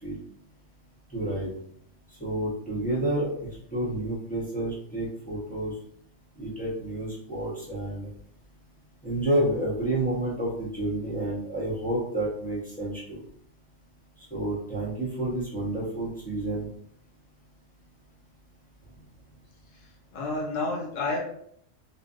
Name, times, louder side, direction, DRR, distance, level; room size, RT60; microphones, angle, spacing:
voice 1, 1.1-1.5 2.2-5.7 6.4-8.1 9.0-13.2 14.3-16.7, right 1 dB, 10° left, -8 dB, 0.7 m, -29 dB
voice 2, 19.7-21.2, left 3 dB, 75° left, -1 dB, 1.1 m, -31 dB
2.6 x 2.2 x 2.4 m, 0.67 s
omnidirectional pair, 1.4 m